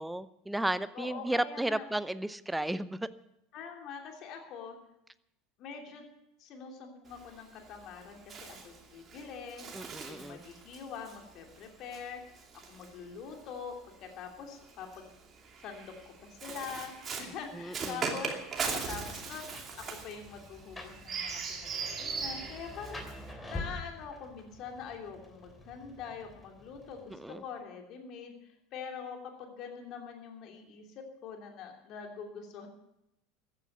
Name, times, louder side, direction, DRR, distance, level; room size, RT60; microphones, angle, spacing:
voice 1, 0.0-3.0 9.7-10.4 17.5-18.1 27.1-27.4, right 1 dB, 5° right, 16 dB, 0.7 m, -34 dB
voice 2, 0.9-1.9 3.5-4.8 5.6-6.1 6.4-9.7 10.1-12.2 12.7-15.1 15.6-18.3 18.7-28.4 28.7-32.7, left 6 dB, 50° left, 3 dB, 3.0 m, -44 dB
Bird, 7.1-13.6 14.5-23.3, right 5 dB, 35° right, 2.7 m, -40 dB
Rain, 18.4-27.4, left 2 dB, 15° left, 3.0 m, -47 dB
14.5 x 9.8 x 8.1 m, 0.84 s
figure-of-eight pair, 75°, 0 cm